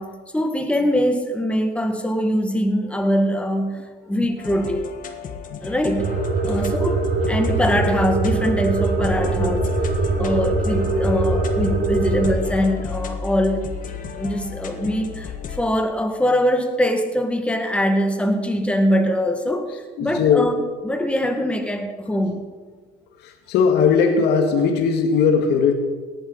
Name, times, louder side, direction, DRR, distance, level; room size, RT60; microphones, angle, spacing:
voice 1, 0.0-4.9 5.6-6.1 6.5-9.7 10.2-13.7 14.1-19.7 20.0-20.5 20.8-22.5, equal, 5° left, 4 dB, 1.8 m, -22 dB
sound 1, 4.4-15.6, left 5 dB, 50° left, 1.6 m, -33 dB
ps Noisepad, 6.0-12.3, right 3 dB, 65° right, 2.9 m, -22 dB
voice 2, 11.7-12.2 14.8-14.9 20.0-20.5 23.2-25.7, left 6 dB, 80° left, 4 dB, 1.8 m, -20 dB
18.0 x 11.5 x 4.1 m, 1.4 s
cardioid pair, 110°, 17 cm